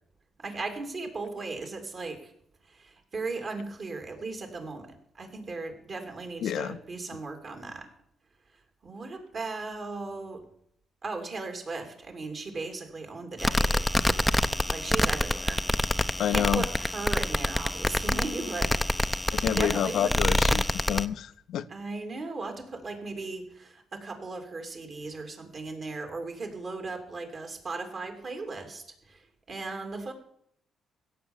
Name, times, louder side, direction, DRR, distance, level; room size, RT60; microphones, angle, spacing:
voice 1, 0.4-2.3 2.6-7.9 8.8-10.5 11.0-13.9 14.7-15.7 16.3-19.1 19.4-20.1 21.7-30.1, right 3 dB, 45° right, 5 dB, 2.8 m, -37 dB
voice 2, 6.4-6.8 16.2-16.7 19.3-21.7, left 10 dB, 75° left, 15 dB, 0.6 m, -29 dB
sound 1, 13.4-21.0, left 1 dB, 5° left, 0.6 m, -27 dB
16.0 x 7.0 x 7.2 m, 0.69 s
cardioid pair, 90°, 0 cm